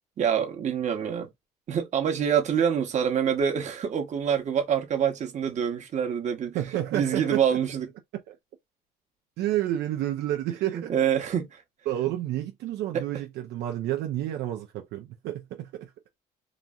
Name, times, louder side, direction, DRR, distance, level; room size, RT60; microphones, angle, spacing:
voice 1, 0.2-1.3 1.7-6.6 6.9-7.9 10.7-11.6 12.9-13.0, right 8 dB, 45° right, 0.9 m, -26 dB
voice 2, 6.5-7.6 8.3-8.4 9.4-10.9 11.9-15.9, right 13 dB, 75° right, 0.5 m, -30 dB
2.9 x 2.6 x 2.3 m
cardioid pair, 110°, 17 cm